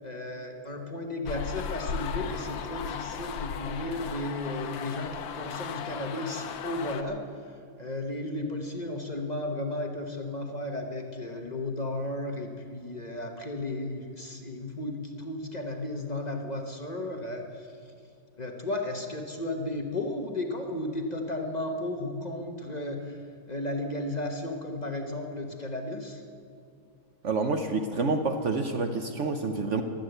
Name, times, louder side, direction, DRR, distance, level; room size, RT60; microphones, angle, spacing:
voice 1, 0.0-17.9 18.4-23.2 23.5-26.2, left 1 dB, 30° left, 3 dB, 0.8 m, -34 dB
Chanting sorority, 1.3-7.0, left 7 dB, 75° left, 1.5 m, -36 dB
voice 2, 27.2-29.8, right 3 dB, 65° right, 6 dB, 0.7 m, -28 dB
14.5 x 12.0 x 7.9 m, 2.4 s
omnidirectional pair, 2.2 m